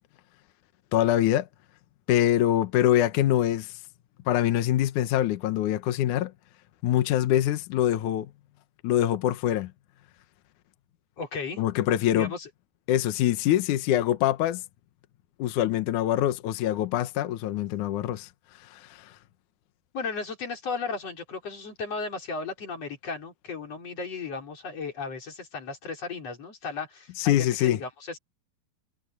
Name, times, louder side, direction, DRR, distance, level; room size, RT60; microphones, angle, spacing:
voice 1, 0.9-1.5 2.1-3.7 4.3-6.3 6.8-8.3 8.8-9.7 11.6-12.3 12.9-14.6 15.4-18.3 18.6-19.1 27.2-27.8, left 12 dB, 70° left, 2.0 m, -24 dB
voice 2, 11.2-11.6 12.1-12.5 19.9-28.2, left 4 dB, 40° left, 5.8 m, -35 dB
omnidirectional pair, 4.6 m